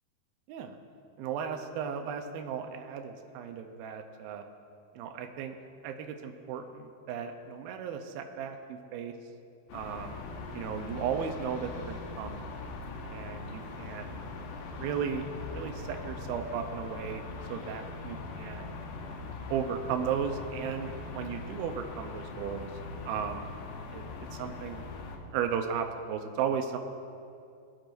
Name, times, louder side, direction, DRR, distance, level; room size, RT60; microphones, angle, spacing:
voice 1, 1.2-4.4 5.0-5.5 5.8-9.1 9.7-10.2 10.5-12.4 13.0-14.1 14.8-17.2 17.5-18.8 19.5-22.7 23.0-23.5 23.9-24.0 24.3-24.8 25.3-26.8, right 7 dB, 85° right, 5 dB, 2.5 m, -35 dB
sound 1, 9.7-25.2, left 3 dB, 70° left, 2.3 m, -41 dB
18.5 x 10.5 x 2.6 m, 2.4 s
omnidirectional pair, 4.2 m